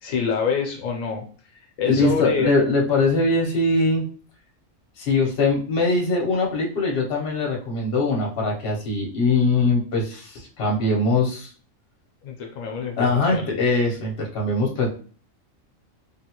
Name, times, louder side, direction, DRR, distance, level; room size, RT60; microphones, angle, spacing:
voice 1, 0.0-1.3 1.8-2.5 12.2-13.6, left 5 dB, 80° left, 1 dB, 1.0 m, -26 dB
voice 2, 1.8-4.0 5.0-11.5 13.0-14.9, left 3 dB, 55° left, -1 dB, 1.0 m, -22 dB
3.5 x 2.2 x 2.9 m, 0.40 s
omnidirectional pair, 1.4 m